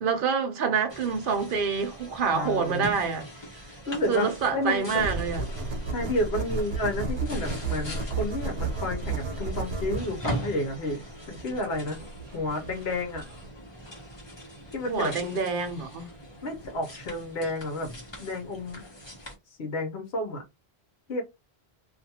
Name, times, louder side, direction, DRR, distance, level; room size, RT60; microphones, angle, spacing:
voice 1, 0.0-3.3 4.1-5.4 14.9-16.1, right 5 dB, 60° right, 0.9 m, -27 dB
sound 1, 0.9-19.4, equal, 25° left, 1.0 m, -41 dB
voice 2, 2.3-2.9 3.9-5.1 5.9-11.0 11.3-12.0 12.3-13.2 14.7-15.1 16.4-17.9 18.2-18.8 19.6-20.4 21.1-21.2, left 1 dB, 75° left, 1.2 m, -31 dB
sound 2, 4.9-13.5, right 3 dB, 80° right, 1.1 m, -33 dB
2.6 x 2.5 x 2.8 m
omnidirectional pair, 1.1 m